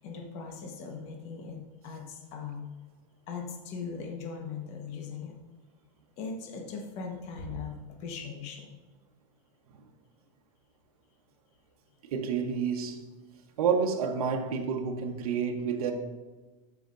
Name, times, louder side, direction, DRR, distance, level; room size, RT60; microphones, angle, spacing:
voice 1, 0.0-2.7 3.3-5.4 6.2-8.7, left 5 dB, 35° left, 1.2 m, -39 dB
voice 2, 12.0-13.0 13.6-15.9, right 6 dB, 75° right, 1.0 m, -29 dB
13.0 x 5.8 x 2.6 m
supercardioid pair, 160°, 19 cm